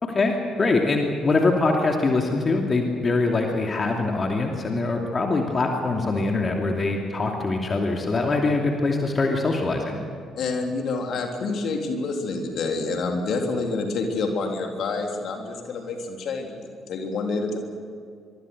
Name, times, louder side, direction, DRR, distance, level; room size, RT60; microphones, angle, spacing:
voice 1, 0.0-10.0, left 3 dB, 35° left, 2 dB, 2.7 m, -23 dB
voice 2, 10.4-17.6, left 3 dB, 55° left, 3 dB, 3.4 m, -28 dB
24.5 x 24.0 x 6.7 m, 2.2 s
figure-of-eight pair, 45°, 0 cm